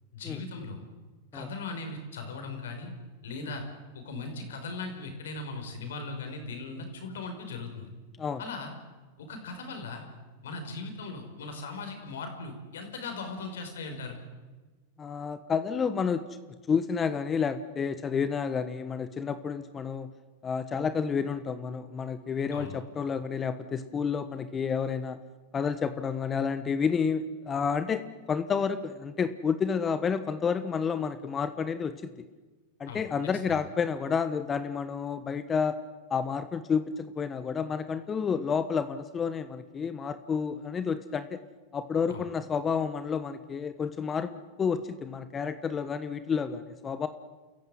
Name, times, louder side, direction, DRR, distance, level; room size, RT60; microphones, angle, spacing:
voice 1, 0.1-0.9 1.3-2.9 3.2-3.6 3.9-7.9 8.4-8.7 9.2-10.0 10.4-14.2 22.5-22.7 32.9-33.0 33.5-33.6 42.1-42.2, left 3 dB, 80° left, 5 dB, 5.5 m, -38 dB
voice 2, 15.0-16.2 16.7-20.1 20.4-25.2 25.5-31.9 32.8-35.8 36.1-41.4 41.7-47.1, left 6 dB, 25° left, 11 dB, 1.2 m, -30 dB
28.5 x 14.5 x 9.4 m, 1.3 s
hypercardioid pair, 115°, 0 cm